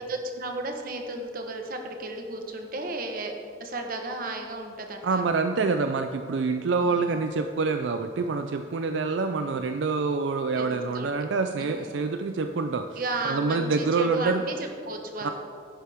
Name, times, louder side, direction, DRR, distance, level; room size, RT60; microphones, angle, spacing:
voice 1, 0.1-3.3 3.6-5.3 6.8-7.2 10.5-11.1 11.6-12.0 13.0-15.3, right 2 dB, 50° right, 4 dB, 1.1 m, -34 dB
voice 2, 5.0-13.0 13.2-14.4 15.2-15.3, right 4 dB, 80° right, 7 dB, 0.4 m, -26 dB
11.0 x 10.5 x 3.5 m, 2.3 s
head